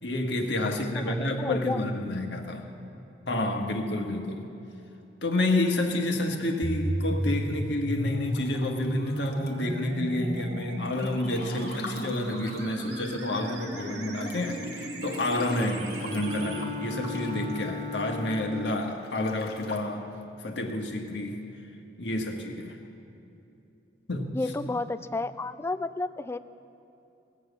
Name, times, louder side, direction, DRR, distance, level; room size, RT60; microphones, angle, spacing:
voice 1, 0.0-2.7 3.3-4.5 5.2-20.0 20.4-21.4 22.0-22.8 24.1-24.3, left 1 dB, 80° left, 3 dB, 1.5 m, -29 dB
voice 2, 1.1-1.8 24.3-26.4, left 2 dB, 15° left, 13 dB, 0.3 m, -32 dB
sound 1, 6.6-16.6, equal, 80° right, 1.8 m, -34 dB
Breathing / Bathtub (filling or washing) / Splash splatter, 8.3-9.9 10.3-13.5 13.8-13.9 14.2-18.3 18.9-19.8, left 3 dB, 60° left, 1.2 m, -45 dB
Bowed string instrument, 15.9-18.9, left 4 dB, 60° right, 1.3 m, -36 dB
19.5 x 7.2 x 8.2 m, 2.8 s
head